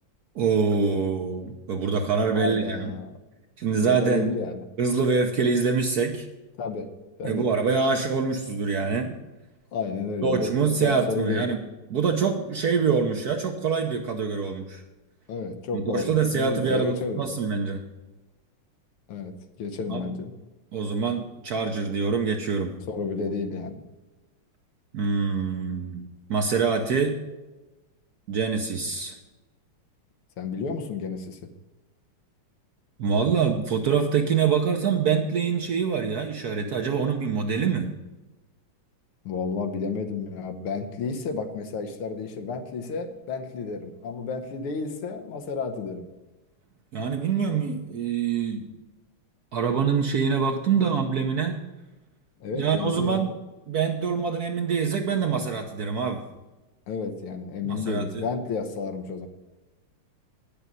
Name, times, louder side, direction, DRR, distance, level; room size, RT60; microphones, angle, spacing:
voice 1, 0.3-2.9 3.6-4.3 4.8-6.3 7.2-9.1 10.2-11.6 11.9-14.8 15.7-17.8 19.9-20.0 20.7-22.7 24.9-26.0 26.3-27.2 28.3-29.2 33.0-37.9 46.9-48.6 49.5-51.6 52.5-53.3 53.7-56.2 57.6-58.2, right 5 dB, 60° right, 4 dB, 1.0 m, -25 dB
voice 2, 2.3-3.1 3.7-4.6 6.6-6.9 7.2-7.5 9.7-10.5 10.8-11.5 15.3-17.2 19.1-20.4 22.9-23.8 30.4-31.4 39.3-46.1 52.4-53.2 56.9-59.3, left 4 dB, 80° left, 6 dB, 1.9 m, -31 dB
9.4 x 6.8 x 7.5 m, 1.1 s
omnidirectional pair, 2.4 m